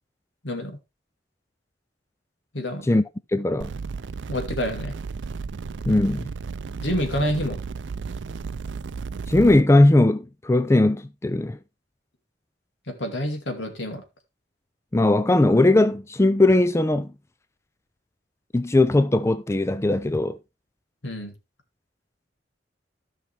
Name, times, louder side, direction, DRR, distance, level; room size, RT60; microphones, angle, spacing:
voice 1, 0.4-0.8 2.5-2.9 4.3-4.9 6.8-7.6 12.9-14.0 21.0-21.3, left 1 dB, 75° left, 2.4 m, -28 dB
voice 2, 3.3-3.7 5.8-6.3 9.3-11.6 14.9-17.1 18.5-20.4, left 2 dB, 15° left, 0.4 m, -19 dB
sound 1, 3.6-9.6, right 5 dB, 80° right, 0.5 m, -33 dB
14.5 x 5.8 x 3.4 m
head